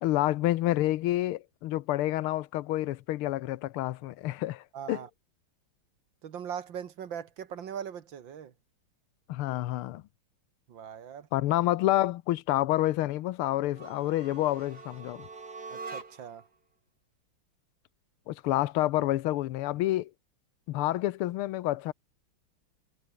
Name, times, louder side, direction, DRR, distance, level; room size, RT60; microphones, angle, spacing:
voice 1, 0.0-5.0 9.3-10.0 11.3-15.3 18.3-20.1 20.7-21.9, left 15 dB, 85° left, 1.6 m, -28 dB
voice 2, 4.7-5.1 6.2-8.5 10.7-11.3 15.7-16.5, right 8 dB, 65° right, 2.1 m, -40 dB
sound 1, 13.7-16.4, right 4 dB, 50° right, 3.6 m, -44 dB
omnidirectional pair, 2.3 m